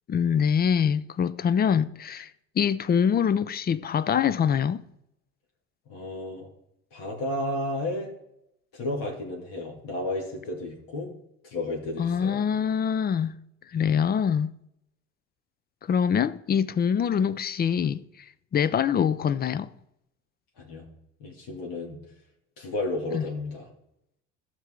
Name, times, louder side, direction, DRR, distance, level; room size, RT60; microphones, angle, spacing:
voice 1, 0.1-2.3 2.6-4.8 12.0-13.3 13.7-14.5 15.9-18.0 18.5-19.7 23.1-23.2, left 7 dB, 25° left, 0.5 m, -24 dB
voice 2, 5.9-6.5 6.9-8.1 8.7-11.1 11.4-12.4 20.6-20.8 21.2-22.0 22.6-23.7, left 2 dB, 65° left, 2.5 m, -32 dB
14.0 x 6.0 x 3.8 m
hypercardioid pair, 75°, 37 cm